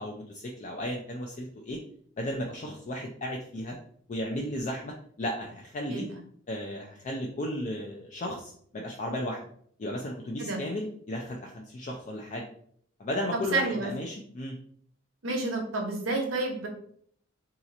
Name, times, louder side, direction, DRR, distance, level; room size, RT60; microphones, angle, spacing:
voice 1, 0.0-1.8 2.2-3.8 4.1-6.1 6.5-9.4 9.8-12.4 13.0-14.6, left 1 dB, 40° left, 0 dB, 0.4 m, -34 dB
voice 2, 13.5-13.9 15.2-16.7, right 3 dB, 80° right, 1 dB, 0.9 m, -30 dB
2.8 x 2.4 x 4.0 m, 0.62 s
head